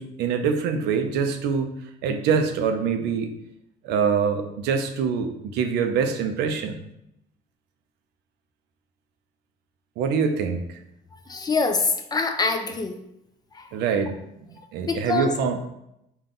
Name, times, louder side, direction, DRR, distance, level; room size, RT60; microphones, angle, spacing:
voice 1, 0.0-1.7 2.0-3.3 3.8-6.8 10.0-10.6 13.7-14.2 14.7-15.7, right 6 dB, 85° right, 6 dB, 0.5 m, -24 dB
voice 2, 11.3-13.0 13.5-13.7 14.9-15.3, left 4 dB, 25° left, 6 dB, 0.4 m, -24 dB
3.7 x 2.3 x 3.7 m, 0.81 s
cardioid pair, 110°, 17 cm